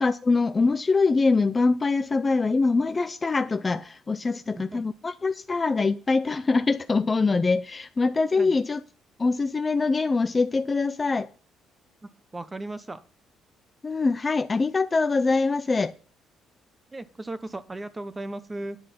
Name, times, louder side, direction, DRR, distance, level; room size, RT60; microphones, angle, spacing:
voice 1, 0.0-8.8 9.2-11.3 13.8-15.9, left 3 dB, 20° left, 12 dB, 0.4 m, -24 dB
voice 2, 12.0-13.0 16.9-18.8, right 2 dB, 15° right, 14 dB, 0.8 m, -36 dB
10.5 x 7.4 x 5.8 m, 0.38 s
cardioid pair, 155°, 0 cm